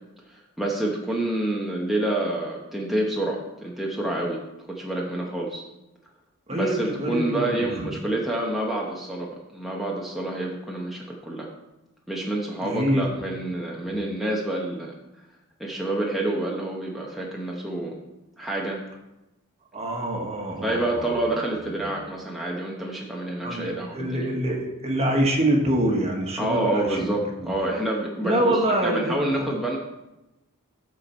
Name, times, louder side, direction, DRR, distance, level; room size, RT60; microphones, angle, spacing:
voice 1, 0.3-4.4 4.7-5.6 6.5-11.5 12.1-14.9 15.6-18.0 18.4-18.8 20.6-24.3 26.4-29.8, right 1 dB, ahead, -3 dB, 0.9 m, -28 dB
voice 2, 6.5-7.9 12.6-13.1 13.9-14.0 19.7-21.3 21.8-21.9 23.4-27.5 28.2-29.5, right 1 dB, 30° right, 1 dB, 1.4 m, -26 dB
13.5 x 4.5 x 4.4 m, 0.98 s
head